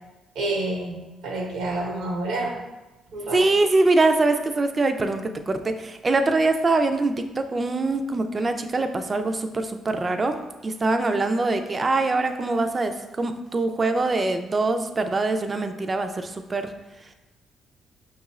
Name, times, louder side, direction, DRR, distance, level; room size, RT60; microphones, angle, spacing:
voice 1, 0.3-2.6 3.1-3.4, right 2 dB, 85° right, -1 dB, 0.9 m, -28 dB
voice 2, 3.3-16.7, right 2 dB, 30° right, 7 dB, 0.3 m, -23 dB
5.2 x 2.4 x 3.0 m, 1.1 s
cardioid pair, 90°, 0 cm